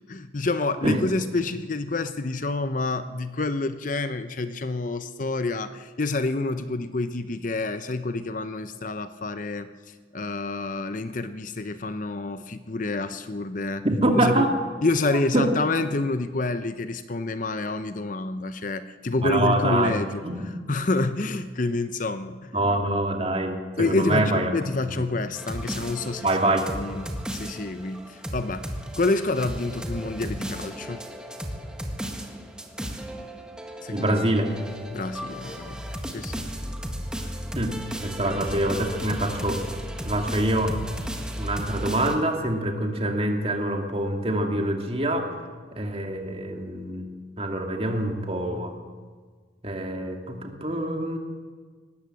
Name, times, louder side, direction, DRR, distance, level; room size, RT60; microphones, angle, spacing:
voice 1, 0.1-13.8 14.2-14.4 14.8-20.2 20.7-22.5 23.8-28.7 29.0-31.0 33.8-34.1 34.9-36.3 38.3-38.4, left 2 dB, 40° left, 11 dB, 0.7 m, -28 dB
voice 2, 13.8-14.5 15.1-15.5 19.2-20.4 22.5-24.5 24.9-25.0 26.2-26.7 33.9-34.5 37.6-37.7 38.0-39.6 40.0-40.7 41.4-45.3 45.7-47.0 47.4-48.7 49.6-51.2, right 1 dB, 30° right, 3 dB, 2.4 m, -25 dB
sound 1, 25.4-42.2, equal, 5° right, 1.7 m, -35 dB
19.5 x 18.5 x 7.7 m, 1.5 s
head